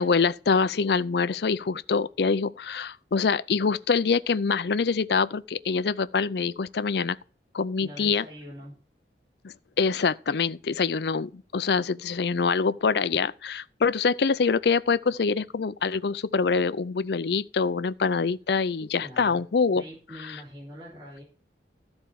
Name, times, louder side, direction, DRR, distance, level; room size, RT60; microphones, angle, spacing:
voice 1, 0.0-7.2 7.5-8.2 9.4-19.8, left 5 dB, 70° left, 0.5 m, -25 dB
voice 2, 7.8-8.8 18.8-19.4 19.7-21.2, equal, 25° right, 3.2 m, -44 dB
13.0 x 4.4 x 6.9 m
head